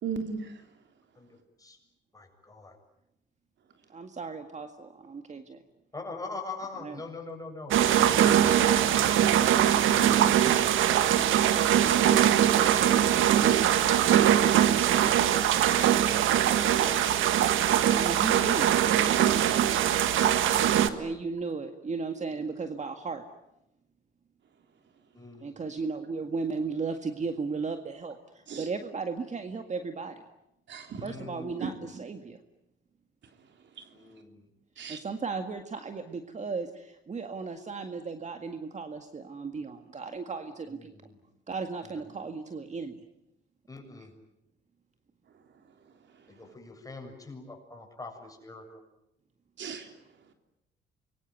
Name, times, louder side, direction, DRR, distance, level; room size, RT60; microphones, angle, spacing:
voice 1, 0.0-0.6 28.5-28.7 30.7-31.0 31.6-31.7 33.8-33.9 34.8-35.0 49.6-49.9, right 6 dB, 65° right, 6 dB, 3.3 m, -35 dB
voice 2, 1.2-1.8 2.1-2.8 5.9-9.1 9.4-10.7 11.4-12.8 18.7-18.8 22.3-22.4 25.1-25.8 31.0-31.8 33.9-34.5 40.7-41.2 41.8-42.2 43.7-44.1 46.3-48.8, left 3 dB, 15° left, 3 dB, 7.4 m, -45 dB
voice 3, 3.9-5.6 6.8-7.0 17.9-18.7 21.0-23.2 25.4-30.2 31.0-32.4 34.9-40.9 41.5-43.0, right 4 dB, 35° right, 6 dB, 1.9 m, -35 dB
sound 1, 7.7-20.9, right 10 dB, 85° right, 1.6 m, -22 dB
26.5 x 23.0 x 9.3 m, 0.86 s
cardioid pair, 90°, 20 cm